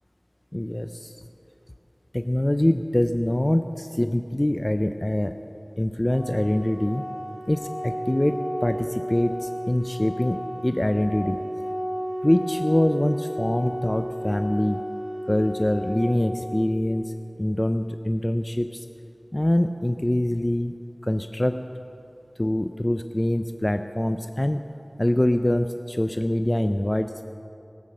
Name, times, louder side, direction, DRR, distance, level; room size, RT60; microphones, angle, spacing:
voice 1, 0.5-1.1 2.1-5.3 5.8-7.0 7.5-11.4 12.2-14.8 15.3-17.1 17.4-18.8 19.3-20.7 21.0-21.6 22.4-24.6 25.0-27.2, left 1 dB, 30° left, 8 dB, 0.5 m, -24 dB
Organ, 6.1-17.1, equal, 80° right, 2.1 m, -33 dB
17.5 x 7.2 x 7.5 m, 2.7 s
wide cardioid pair, 45°, 0 cm